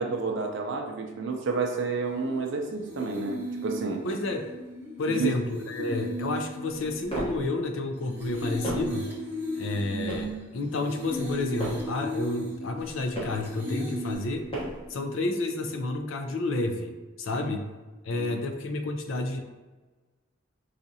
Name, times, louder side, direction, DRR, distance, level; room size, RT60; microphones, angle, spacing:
voice 1, 0.0-4.0 5.1-5.3 17.3-17.5 18.1-18.4, right 4 dB, 65° right, 2 dB, 0.4 m, -30 dB
sound 1, 2.0-14.2, equal, 10° right, 0.8 m, -36 dB
voice 2, 4.0-4.5 5.0-9.1 9.5-14.5 14.9-17.7 18.0-19.4, left 2 dB, 75° left, 5 dB, 0.4 m, -30 dB
sound 2, 6.7-7.5 8.2-9.0 9.7-10.4 11.1-11.9 12.7-13.5 14.1-14.9, right 1 dB, 30° left, 1.1 m, -36 dB
sound 3, 14.6-16.5, right 2 dB, 15° left, 1.5 m, -50 dB
4.8 x 2.4 x 2.7 m, 1.3 s
head